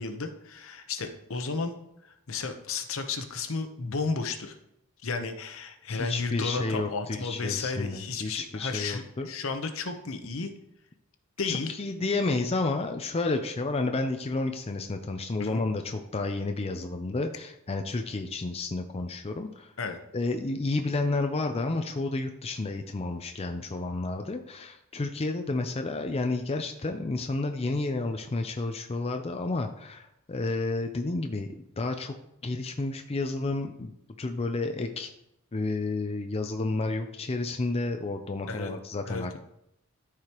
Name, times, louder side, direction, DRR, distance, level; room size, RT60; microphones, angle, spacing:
voice 1, 0.0-1.7 2.0-4.6 5.0-10.5 11.4-11.7 15.4-15.6 19.8-20.0 38.5-38.7 39.1-39.4, left 4 dB, 65° left, 7 dB, 0.9 m, -33 dB
voice 2, 5.9-9.3 11.5-19.7 20.1-31.5 31.8-32.1 32.4-33.9 34.2-35.1 35.5-39.4, left 2 dB, 30° left, 5 dB, 0.5 m, -31 dB
13.0 x 4.9 x 3.0 m, 0.80 s
head